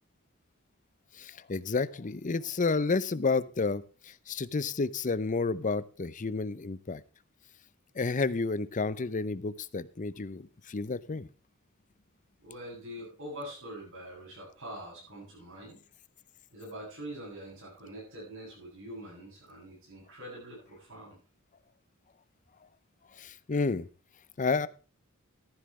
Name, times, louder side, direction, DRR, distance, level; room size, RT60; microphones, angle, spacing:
voice 1, 1.1-7.0 7.9-11.3 23.2-23.9 24.4-24.7, left 4 dB, 35° left, 17 dB, 0.6 m, -31 dB
voice 2, 12.4-15.8 16.5-21.2, right 1 dB, 65° right, -6 dB, 7.5 m, -44 dB
14.0 x 11.5 x 3.2 m, 0.35 s
head